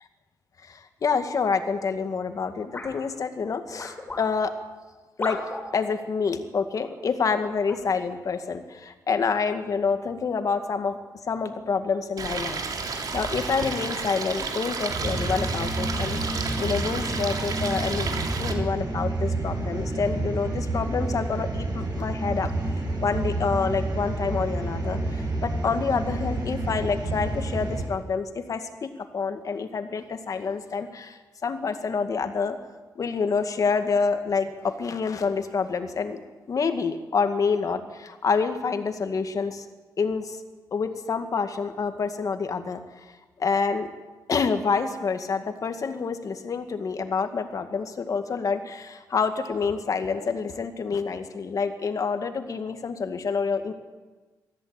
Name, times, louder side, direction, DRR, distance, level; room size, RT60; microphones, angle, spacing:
voice 1, 0.6-4.5 5.2-5.4 5.7-11.0 11.3-22.5 23.0-32.6 33.0-36.2 36.5-39.7 40.0-40.4 40.7-42.8 43.4-43.9 44.3-53.7, left 5 dB, 50° left, 8 dB, 2.1 m, -27 dB
sound 1, 2.7-3.0 3.8-4.3 5.2-5.7 6.8-6.9 7.7-7.9, left 2 dB, 25° left, 5.6 m, -34 dB
Stream, 12.2-18.5, right 4 dB, 60° right, 3.4 m, -32 dB
sound 2, 14.9-27.8, right 2 dB, 75° right, 7.7 m, -29 dB
23.0 x 15.0 x 9.1 m, 1.3 s
wide cardioid pair, 115°, 7 cm